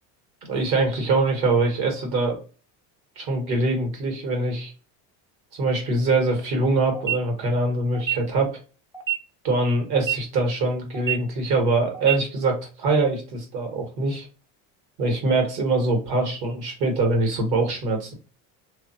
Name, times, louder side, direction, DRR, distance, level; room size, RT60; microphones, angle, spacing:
voice 1, 0.4-2.4 3.2-4.7 5.5-8.5 9.4-14.3 15.0-18.1, right 2 dB, 60° right, 3 dB, 1.5 m, -23 dB
sound 1, 6.9-7.2 7.9-8.1 8.9-9.2 9.9-10.1 10.9-11.2 11.9-12.1, right 12 dB, 10° right, 0.5 m, -25 dB
2.7 x 2.0 x 2.7 m, 0.35 s
supercardioid pair, 100°, 42 cm